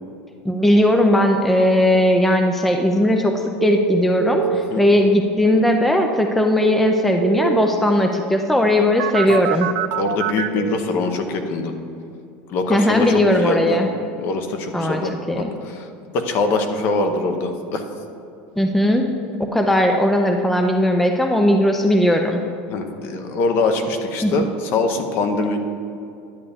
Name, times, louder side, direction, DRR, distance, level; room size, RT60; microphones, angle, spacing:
voice 1, 0.4-3.3 3.6-9.7 12.7-13.9 14.7-15.0 15.3-15.5 18.6-19.1 19.4-22.4 24.2-24.3, left 1 dB, 5° left, 4 dB, 0.4 m, -18 dB
sound 1, 3.6-4.6 6.6-7.6 9.0-10.8, right 11 dB, 85° right, 0.4 m, -23 dB
voice 2, 10.0-11.7 12.5-13.8 14.2-15.9 16.1-17.8 22.7-25.6, left 3 dB, 45° left, 6 dB, 0.9 m, -23 dB
10.5 x 8.3 x 3.5 m, 2.6 s
supercardioid pair, 145°, 5 cm